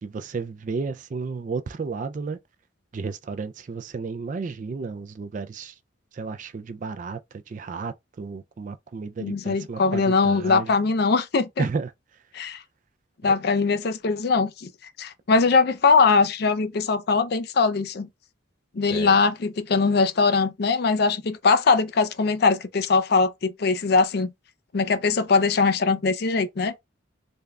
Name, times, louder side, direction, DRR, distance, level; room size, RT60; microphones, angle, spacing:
voice 1, 0.0-2.4 2.9-5.7 6.1-7.2 7.5-10.7 11.6-11.9 18.9-19.2, right 4 dB, 40° right, 0.3 m, -32 dB
voice 2, 9.2-11.7 12.3-12.6 13.2-14.7 15.0-18.1 18.7-24.3 24.7-26.7, left 4 dB, 55° left, 0.4 m, -21 dB
3.5 x 2.3 x 3.2 m
head